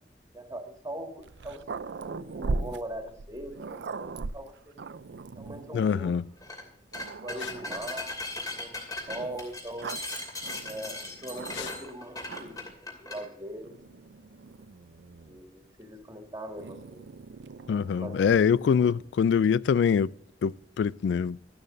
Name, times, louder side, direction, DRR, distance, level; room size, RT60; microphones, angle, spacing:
voice 1, 0.3-1.6 2.0-4.8 5.4-6.2 7.2-8.2 8.5-10.0 10.6-12.6 12.8-14.0 15.3-17.0 18.0-18.3 18.8-19.0, right 1 dB, 20° right, 2.0 m, -41 dB
Growling, 1.2-5.8 6.5-6.6 6.9-8.0 9.1-11.9 12.2-12.8 13.6-15.5 16.6-19.1, right 3 dB, 80° right, 0.5 m, -39 dB
voice 2, 5.7-6.2 17.7-20.1 20.4-21.4, left 7 dB, 85° left, 0.3 m, -24 dB
sound 1, 6.4-6.6 6.9-13.2, left 2 dB, 20° left, 2.8 m, -38 dB
13.0 x 12.0 x 2.6 m
head